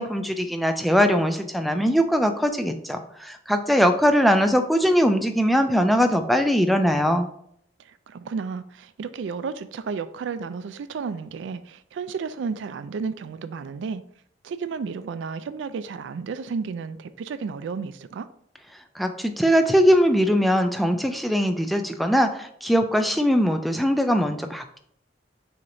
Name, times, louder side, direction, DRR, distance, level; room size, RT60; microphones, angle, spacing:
voice 1, 0.0-7.3 19.0-24.8, equal, ahead, 0.3 m, -21 dB
voice 2, 7.8-14.0 14.4-18.3, right 5 dB, 90° right, 0.3 m, -32 dB
6.2 x 2.9 x 2.6 m
head